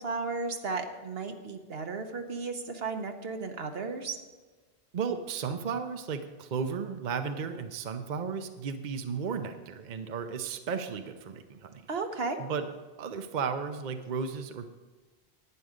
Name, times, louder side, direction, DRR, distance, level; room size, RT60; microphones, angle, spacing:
voice 1, 0.0-4.2 11.9-12.4, right 4 dB, 75° right, 5 dB, 1.2 m, -34 dB
voice 2, 4.9-11.8 12.4-12.7 13.0-14.7, right 6 dB, 50° right, 7 dB, 0.8 m, -34 dB
11.5 x 9.3 x 5.0 m, 1.3 s
omnidirectional pair, 1.0 m